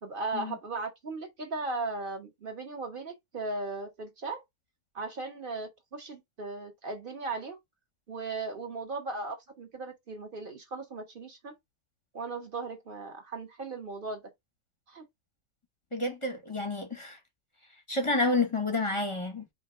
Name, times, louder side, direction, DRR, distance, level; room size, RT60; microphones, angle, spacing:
voice 1, 0.0-4.4 4.9-7.6 8.1-11.5 12.1-14.2 14.9-15.0, right 3 dB, 40° right, 1.2 m, -37 dB
voice 2, 15.9-17.2 17.9-19.5, left 2 dB, 25° left, 0.8 m, -29 dB
5.1 x 2.3 x 4.3 m
omnidirectional pair, 1.5 m